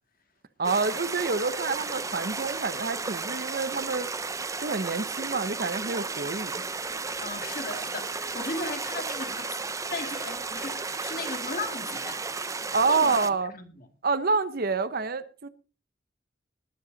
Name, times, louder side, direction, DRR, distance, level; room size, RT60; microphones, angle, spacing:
sound 1, 0.6-13.3, right 4 dB, 20° right, 0.6 m, -34 dB
voice 1, 0.6-4.1 4.6-6.6 12.7-13.5 14.0-15.5, right 4 dB, 55° right, 0.8 m, -27 dB
voice 2, 7.2-9.6 9.9-12.2 12.9-13.9, left 3 dB, 50° left, 2.0 m, -37 dB
20.0 x 7.9 x 4.0 m
head